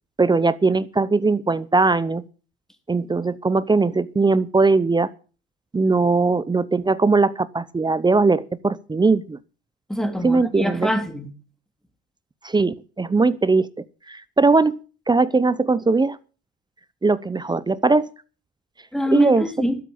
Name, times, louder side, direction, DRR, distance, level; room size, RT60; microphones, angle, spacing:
voice 1, 0.2-2.2 2.9-5.1 5.7-9.4 10.2-10.9 12.4-13.7 14.1-14.8 15.1-16.2 17.0-18.1 19.1-19.5, right 3 dB, 15° right, 0.8 m, -19 dB
voice 2, 9.9-11.3 18.9-19.8, left 1 dB, ahead, 2.8 m, -24 dB
12.5 x 8.3 x 8.7 m
supercardioid pair, 100°, 29 cm